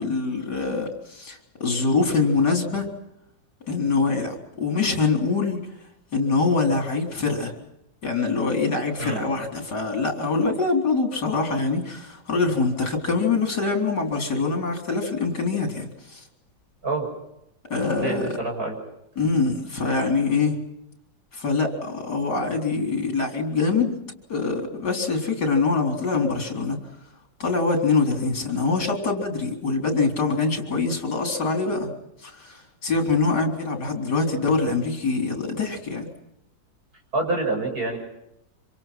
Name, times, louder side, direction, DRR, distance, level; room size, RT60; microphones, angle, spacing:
voice 1, 0.0-2.9 3.7-5.7 6.1-7.5 8.0-16.2 17.7-18.3 19.2-20.6 21.3-24.0 24.3-26.8 27.4-31.9 32.2-36.1, left 4 dB, 65° left, 3 dB, 4.6 m, -24 dB
voice 2, 18.0-18.8 37.1-38.0, right 2 dB, 55° right, 1 dB, 7.4 m, -26 dB
27.0 x 26.5 x 6.0 m, 0.83 s
omnidirectional pair, 1.9 m